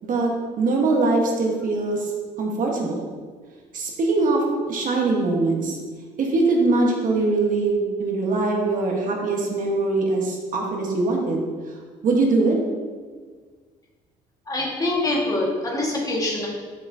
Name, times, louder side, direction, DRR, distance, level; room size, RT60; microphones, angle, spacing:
voice 1, 0.0-2.1 2.4-3.0 3.7-5.8 6.2-11.5 12.0-12.6, right 3 dB, 50° right, 0 dB, 1.3 m, -22 dB
voice 2, 14.5-16.5, left 2 dB, 20° left, -3 dB, 1.7 m, -24 dB
7.7 x 6.1 x 2.8 m, 1.5 s
cardioid pair, 110°, 17 cm